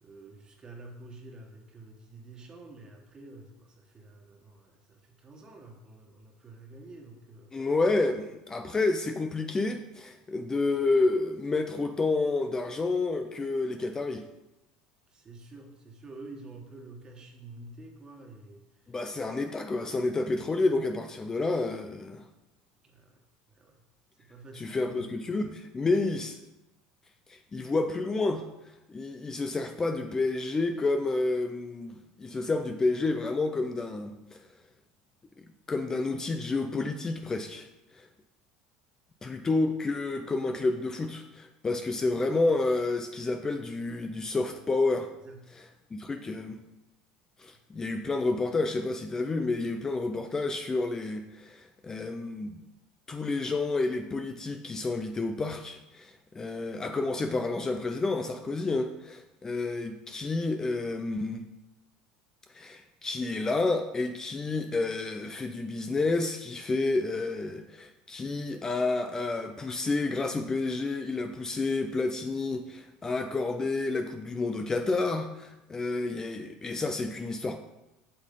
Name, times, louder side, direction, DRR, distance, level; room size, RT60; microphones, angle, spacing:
voice 1, 0.0-7.5 15.1-18.6 22.8-23.2 23.5-23.8 24.2-25.1 45.2-45.4, right 2 dB, 30° right, 2 dB, 1.6 m, -48 dB
voice 2, 7.5-14.2 18.9-22.2 24.5-26.4 27.3-28.5 28.9-34.4 35.4-37.7 38.0-38.1 39.2-45.1 45.9-46.6 47.4-52.6 53.1-61.4 62.5-77.6, left 3 dB, 20° left, 7 dB, 0.6 m, -30 dB
7.7 x 6.3 x 3.8 m, 0.94 s
hypercardioid pair, 90°, 3 cm